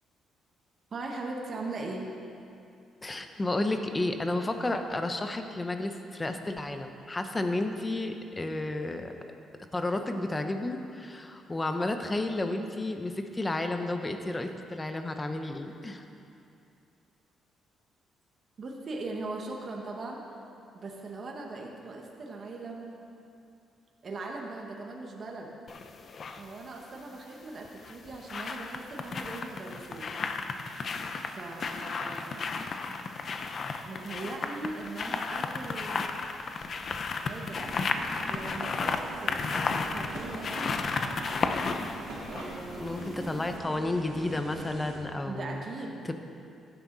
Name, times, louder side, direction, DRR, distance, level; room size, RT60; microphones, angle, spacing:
voice 1, 0.9-2.1 18.6-20.2 20.7-22.9 24.0-25.5 26.3-30.1 31.2-32.5 33.8-36.1 37.2-37.8 38.3-40.7 42.3-43.5 45.3-46.0, right 2 dB, 45° right, 0 dB, 1.8 m, -40 dB
voice 2, 3.0-9.1 9.7-16.1 42.8-45.6 46.0-46.1, left 2 dB, 20° left, 6 dB, 1.0 m, -32 dB
sound 1, 25.7-26.4 27.7-43.2 43.5-43.6, left 4 dB, 50° left, 0.8 m, -33 dB
sound 2, 37.5-45.0, right 2 dB, 90° right, 3.0 m, -43 dB
15.5 x 9.9 x 4.2 m, 2.6 s
cardioid pair, 90°, 0 cm